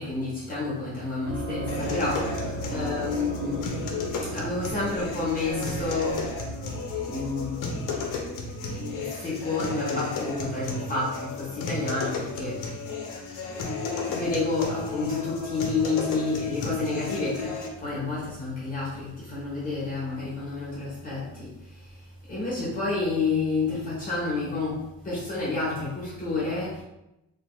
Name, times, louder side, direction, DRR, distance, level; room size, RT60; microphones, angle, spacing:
voice 1, 0.0-3.9 4.2-6.3 7.1-8.2 8.7-12.6 13.3-13.4 13.9-22.0 22.3-26.8, left 3 dB, 25° left, -8 dB, 0.8 m, -30 dB
sound 1, 1.2-9.6, equal, 80° right, 0.8 m, -36 dB
sound 2, 1.7-17.7, left 3 dB, 60° left, 0.6 m, -33 dB
2.6 x 2.3 x 3.0 m, 0.89 s
cardioid pair, 175°, 37 cm